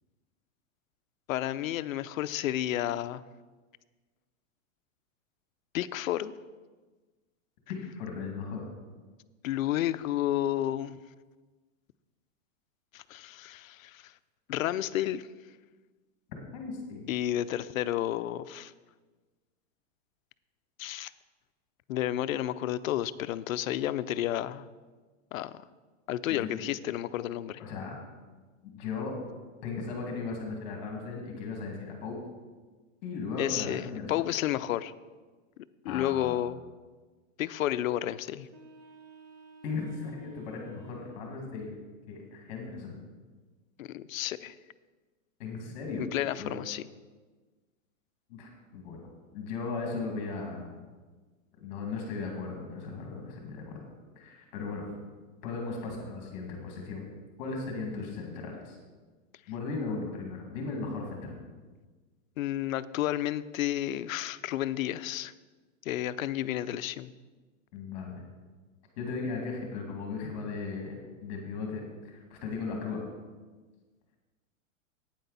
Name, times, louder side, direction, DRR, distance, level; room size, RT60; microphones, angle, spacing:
voice 1, 1.3-3.2 5.7-6.3 9.4-11.0 12.9-14.1 14.5-15.3 17.1-18.7 20.8-21.1 21.9-24.7 25.3-25.6 26.1-27.6 33.4-34.9 35.8-36.6 37.4-38.5 43.8-44.6 46.0-46.8 62.4-65.3 65.8-67.1, left 13 dB, 80° left, 15 dB, 0.6 m, -31 dB
voice 2, 7.7-8.7 16.5-17.1 26.3-26.7 27.6-28.0 28.6-29.1 29.6-32.2 33.0-34.2 35.9-36.4 39.6-41.8 42.1-43.0 45.4-46.1 46.4-46.6 48.3-49.1 49.3-50.7 51.6-53.8 54.2-54.9 55.4-57.1 57.4-58.8 59.5-61.3 67.7-68.2 69.0-73.1, left 4 dB, 30° left, 1 dB, 2.0 m, -37 dB
sound 1, 38.4-41.4, right 2 dB, 15° right, 0.6 m, -54 dB
11.0 x 9.2 x 4.0 m, 1.3 s
supercardioid pair, 180°, 40 cm